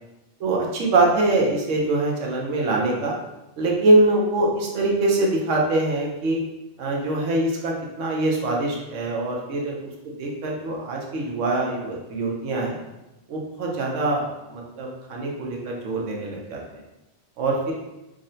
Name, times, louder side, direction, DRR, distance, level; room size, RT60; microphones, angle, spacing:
voice 1, 0.4-3.1 3.6-6.4 6.8-9.8 10.0-12.8 13.3-16.6 17.4-17.7, right 2 dB, 85° right, -1 dB, 1.0 m, -23 dB
3.7 x 2.1 x 2.6 m, 0.98 s
omnidirectional pair, 1.2 m